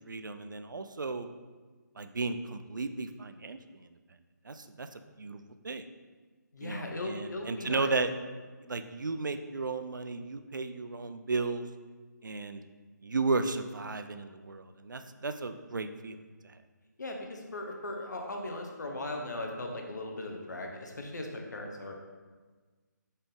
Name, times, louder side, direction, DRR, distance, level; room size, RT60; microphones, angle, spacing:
voice 1, 0.1-1.3 2.0-3.9 4.4-4.9 5.2-5.8 6.6-8.1 8.6-11.7 12.2-12.7 13.0-16.2 16.4-16.6, right 3 dB, 85° right, 9 dB, 0.4 m, -34 dB
voice 2, 6.5-7.9 17.0-21.9, left 2 dB, 70° left, 2 dB, 0.8 m, -38 dB
4.1 x 3.6 x 3.4 m, 1.4 s
figure-of-eight pair, 150°, 10 cm